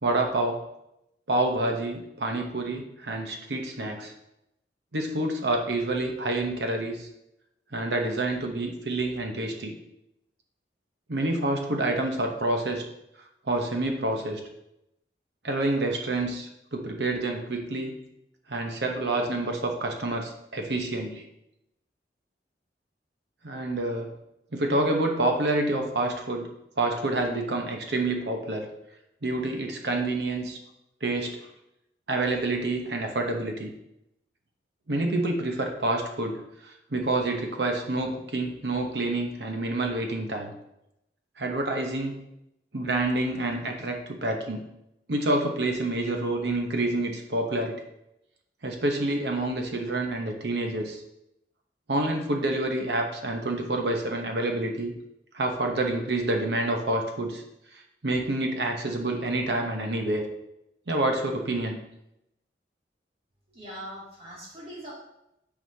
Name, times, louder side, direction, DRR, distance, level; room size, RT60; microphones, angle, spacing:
voice 1, 0.0-0.6 1.3-4.1 4.9-7.1 7.7-9.7 11.1-12.8 13.5-14.4 15.4-17.9 18.5-21.3 23.4-24.1 24.5-26.5 26.8-28.7 29.2-30.6 31.0-31.5 32.1-33.7 34.9-40.5 41.4-42.2 42.7-44.6 45.1-47.8 48.6-51.0 51.9-54.9 55.3-57.4 58.0-60.2 60.9-61.8, right 2 dB, 70° right, 3 dB, 1.0 m, -28 dB
voice 2, 63.5-64.9, equal, 35° right, -6 dB, 2.5 m, -41 dB
9.2 x 4.1 x 2.8 m, 0.84 s
head